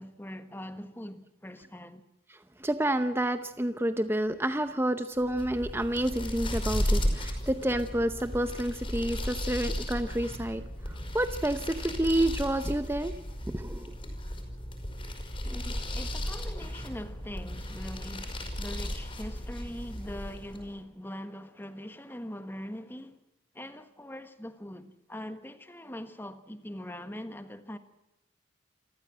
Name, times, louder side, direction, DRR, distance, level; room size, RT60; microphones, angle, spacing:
voice 1, 0.0-2.0 15.4-23.2 23.5-27.8, left 1 dB, 10° left, 1.4 m, -42 dB
voice 2, 2.6-13.1 13.5-14.0, right 1 dB, 10° right, 0.7 m, -29 dB
sound 1, 5.2-20.7, equal, 25° left, 4.9 m, -35 dB
28.5 x 14.5 x 7.5 m
head